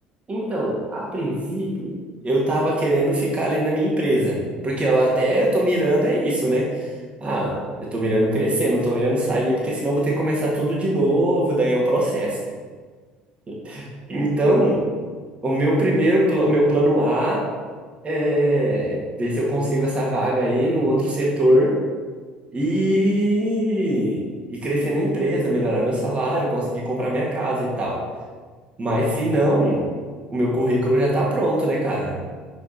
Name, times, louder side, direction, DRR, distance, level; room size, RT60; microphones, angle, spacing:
voice 1, 0.3-1.9 2.2-6.9 7.2-12.4 13.5-14.8 15.4-17.5 18.0-21.8 22.5-28.0 28.8-29.9 30.3-32.2, right 1 dB, 25° right, -4 dB, 1.6 m, -21 dB
6.8 x 4.9 x 2.8 m, 1.5 s
figure-of-eight pair, 60°, 5 cm